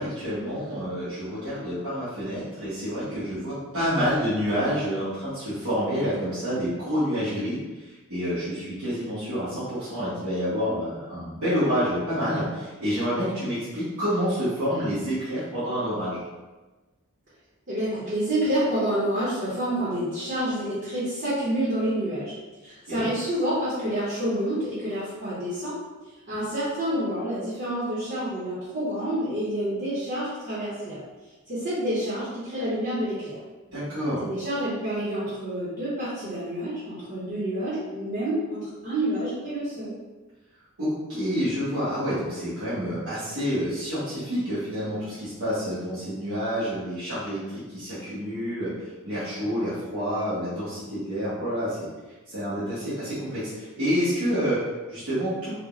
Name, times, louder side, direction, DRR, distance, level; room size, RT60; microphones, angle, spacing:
voice 1, 0.0-16.2 22.9-23.1 33.7-34.2 40.8-48.7 49.0-51.9 52.3-55.5, equal, 85° right, -14 dB, 1.0 m, -28 dB
voice 2, 17.7-22.3 22.6-25.7 26.3-31.0 31.5-33.4 34.2-39.9, right 1 dB, 45° right, -10 dB, 0.9 m, -28 dB
3.4 x 2.1 x 2.3 m, 1.2 s
head